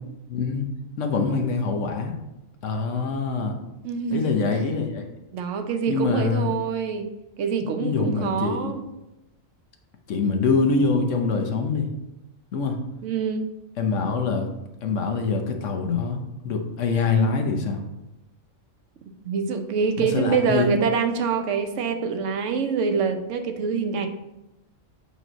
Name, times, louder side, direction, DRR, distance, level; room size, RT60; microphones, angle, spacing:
voice 1, 0.3-0.7 1.0-2.1 2.6-3.5 4.1-5.0 5.9-6.5 7.8-8.7 10.1-11.9 12.5-12.8 13.8-14.5 14.8-17.8 20.0-20.7, left 4 dB, 70° left, 4 dB, 1.1 m, -24 dB
voice 2, 3.8-4.3 5.3-7.1 7.4-8.8 13.0-13.5 19.3-24.1, right 5 dB, 70° right, 7 dB, 1.0 m, -25 dB
8.3 x 3.0 x 3.9 m, 0.95 s
omnidirectional pair, 1.4 m